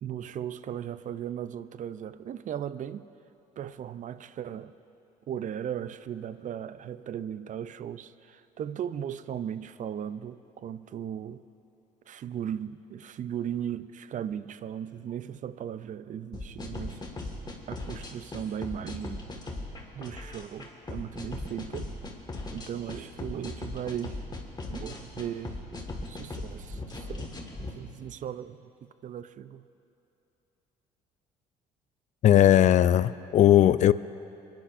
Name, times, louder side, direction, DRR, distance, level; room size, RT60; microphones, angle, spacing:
voice 1, 0.0-3.0 3.6-4.7 5.3-11.4 12.1-17.0 17.7-19.3 19.9-21.9 22.3-24.2 24.7-25.6 26.1-27.3 27.6-29.6, right 9 dB, 45° right, 0.5 m, -37 dB
sound 1, 16.3-27.7, left 2 dB, 25° left, 1.8 m, -38 dB
voice 2, 32.2-33.9, left 11 dB, 45° left, 0.4 m, -18 dB
24.0 x 10.5 x 2.6 m
hypercardioid pair, 65°, 18 cm